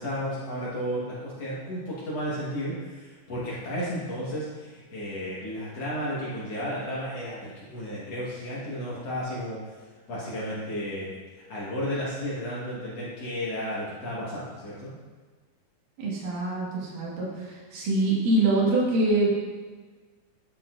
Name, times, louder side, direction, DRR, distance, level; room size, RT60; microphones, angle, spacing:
voice 1, 0.0-9.7 10.1-11.1 11.5-14.9, equal, 55° left, -7 dB, 2.2 m, -33 dB
voice 2, 16.0-19.3, right 2 dB, 70° right, -5 dB, 3.2 m, -25 dB
10.5 x 7.0 x 2.5 m, 1.4 s
omnidirectional pair, 4.0 m